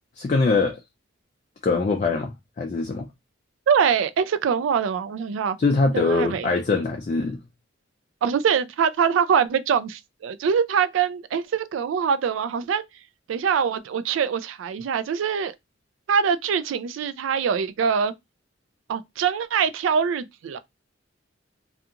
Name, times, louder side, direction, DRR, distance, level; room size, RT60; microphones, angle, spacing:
voice 1, 0.2-0.8 1.6-3.1 5.6-7.4, left 3 dB, 35° left, 0.3 m, -23 dB
voice 2, 3.7-5.6 5.9-6.5 8.2-12.8 13.3-15.5 16.1-18.1 18.9-20.6, right 7 dB, 80° right, 0.3 m, -23 dB
2.4 x 2.3 x 2.7 m
head